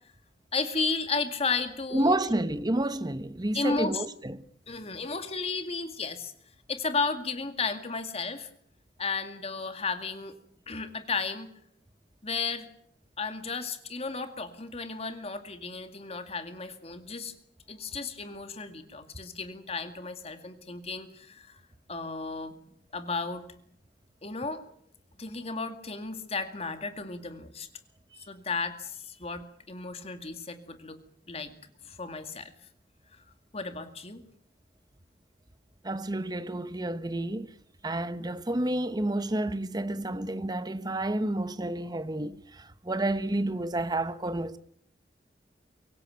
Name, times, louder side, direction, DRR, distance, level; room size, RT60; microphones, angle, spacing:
voice 1, 0.5-2.1 3.5-4.0 4.7-6.3 6.7-8.5 9.0-10.4 10.7-11.5 12.2-12.7 13.2-17.3 17.7-21.6 21.9-22.5 22.9-23.4 24.2-24.6 25.2-27.7 28.3-31.0 31.3-31.5 31.9-32.5 33.1-33.2 33.5-34.2, left 4 dB, 35° left, 2.2 m, -34 dB
voice 2, 1.9-4.4 35.8-37.5 37.8-44.6, right 1 dB, 25° right, 1.0 m, -30 dB
24.5 x 16.5 x 9.3 m
head